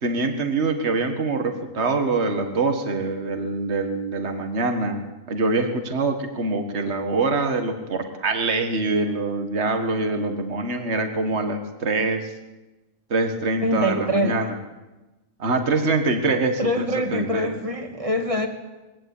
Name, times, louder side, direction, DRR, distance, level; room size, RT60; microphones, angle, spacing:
voice 1, 0.0-5.0 5.3-12.3 13.1-14.5 15.4-16.8 17.1-17.5, right 3 dB, 50° right, 6 dB, 2.0 m, -24 dB
voice 2, 13.6-14.4 16.6-18.5, equal, 25° right, 4 dB, 2.2 m, -24 dB
22.0 x 17.0 x 8.5 m, 1.1 s
omnidirectional pair, 1.5 m